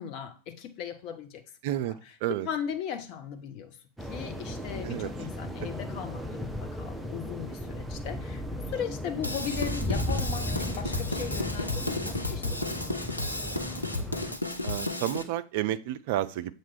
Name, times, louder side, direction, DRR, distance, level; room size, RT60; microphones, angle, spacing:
voice 1, 0.0-1.4 1.7-13.1, left 8 dB, 40° left, 7 dB, 0.8 m, -38 dB
voice 2, 1.6-2.5 4.8-5.1 14.6-16.5, right 13 dB, 50° right, 13 dB, 0.4 m, -31 dB
sound 1, 4.0-14.4, left 1 dB, 5° right, 0.6 m, -35 dB
Drum kit / Drum, 9.2-15.2, left 2 dB, 85° left, 0.6 m, -33 dB
7.3 x 3.1 x 4.3 m, 0.35 s
figure-of-eight pair, 90°, 0 cm